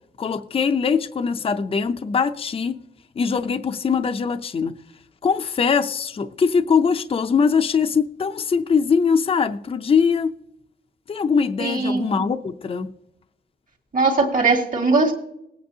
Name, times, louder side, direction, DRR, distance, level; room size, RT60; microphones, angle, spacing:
voice 1, 0.2-2.8 3.2-4.7 5.2-10.3 11.1-12.9, left 6 dB, 35° left, 0.5 m, -21 dB
voice 2, 11.6-12.3 13.9-15.1, right 3 dB, 50° right, 2.1 m, -20 dB
19.5 x 8.7 x 2.8 m
wide cardioid pair, 140°, 18 cm